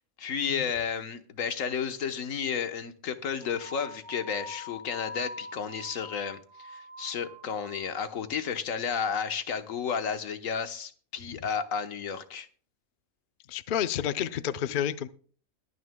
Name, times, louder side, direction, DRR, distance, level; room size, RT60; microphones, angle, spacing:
voice 1, 0.2-12.5, left 6 dB, 75° left, 1.4 m, -32 dB
sound 1, 3.4-8.0, left 2 dB, 35° right, 4.5 m, -44 dB
voice 2, 13.5-15.1, left 9 dB, 55° left, 0.6 m, -30 dB
21.5 x 9.5 x 2.2 m
omnidirectional pair, 1.4 m